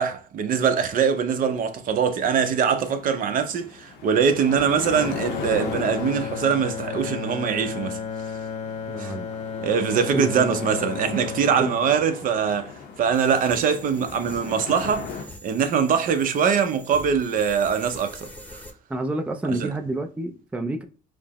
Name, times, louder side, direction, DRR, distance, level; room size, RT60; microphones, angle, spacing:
voice 1, 0.0-8.0 9.0-9.1 9.6-12.7 13.0-18.6 19.5-19.7, right 7 dB, 55° right, 0.6 m, -23 dB
sound 1, 1.4-15.2, left 5 dB, 85° left, 0.7 m, -38 dB
Bowed string instrument, 4.8-13.0, left 6 dB, 40° left, 0.5 m, -34 dB
voice 2, 8.9-9.3 10.1-10.5 11.6-11.7 18.9-20.8, right 2 dB, 5° right, 0.4 m, -28 dB
sound 2, 13.1-18.7, equal, 10° left, 0.8 m, -44 dB
5.0 x 2.0 x 2.9 m
cardioid pair, 110°, 17 cm